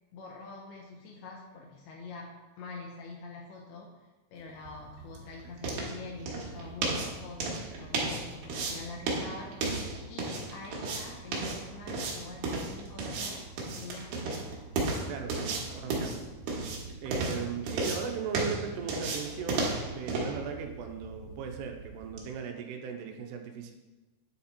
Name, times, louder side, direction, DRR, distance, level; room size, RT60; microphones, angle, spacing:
voice 1, 0.1-4.0 4.3-13.4 13.7-14.5, left 3 dB, 75° left, -1 dB, 2.7 m, -45 dB
sound 1, 4.5-22.3, right 3 dB, 70° right, 2.8 m, -35 dB
voice 2, 15.1-16.1 17.0-23.7, right 7 dB, 85° right, 4 dB, 2.8 m, -38 dB
9.1 x 4.2 x 4.2 m, 1.2 s
omnidirectional pair, 4.7 m